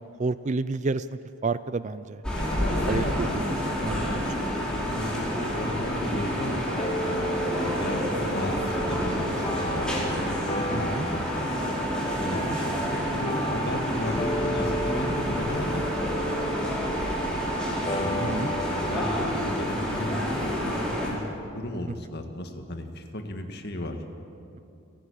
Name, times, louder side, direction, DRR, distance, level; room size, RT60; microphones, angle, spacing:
voice 1, 0.0-2.2 2.9-3.5 3.8-4.2 10.7-11.1 12.4-12.6 18.2-18.5, right 3 dB, 35° right, 15 dB, 0.4 m, -30 dB
sound 1, 2.2-21.1, equal, 5° left, 4.7 m, -29 dB
voice 2, 2.3-4.2 4.9-10.1 10.5-11.5 12.2-16.7 17.9-18.2 18.7-21.3 21.5-24.0, left 1 dB, 50° left, 5 dB, 1.8 m, -35 dB
sound 2, 6.6-14.3, equal, 85° right, 6.0 m, -40 dB
sound 3, 6.8-21.5, equal, 25° left, 1.1 m, -35 dB
30.0 x 11.0 x 8.7 m, 2.6 s
head